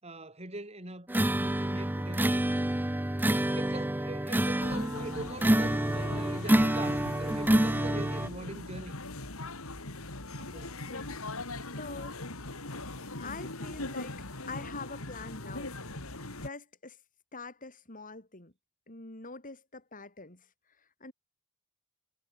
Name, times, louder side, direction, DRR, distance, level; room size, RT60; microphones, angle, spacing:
voice 1, 0.0-2.5 3.5-9.0 10.3-10.8, right 2 dB, 30° right, 7.3 m, -43 dB
sound 1, 1.1-8.3, right 1 dB, 10° right, 0.6 m, -27 dB
sound 2, 4.6-16.5, left 2 dB, 70° left, 4.0 m, -40 dB
voice 2, 10.6-11.2 11.7-12.2 13.2-14.1 14.5-15.7 16.3-17.0 17.3-18.5 18.9-20.5 20.8-21.1, left 3 dB, 40° left, 4.8 m, -44 dB
head